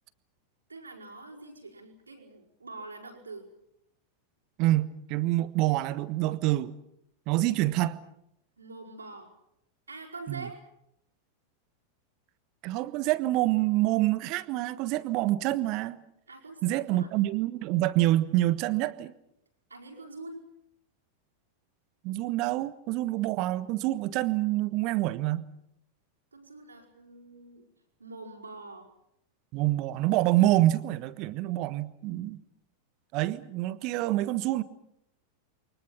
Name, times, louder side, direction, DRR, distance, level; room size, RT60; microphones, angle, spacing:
voice 1, 0.7-3.5 8.6-9.3 9.9-10.6 16.3-17.1 19.7-20.4 26.3-27.7 28.0-28.9, right 3 dB, 80° right, 1 dB, 5.0 m, -44 dB
voice 2, 4.6-6.7 7.3-8.0 10.3-10.5 12.6-16.0 16.6-19.1 22.0-25.4 29.5-32.4 33.1-34.6, right 16 dB, 40° right, 15 dB, 1.3 m, -26 dB
29.5 x 23.5 x 6.1 m, 0.77 s
figure-of-eight pair, 90°, 0 cm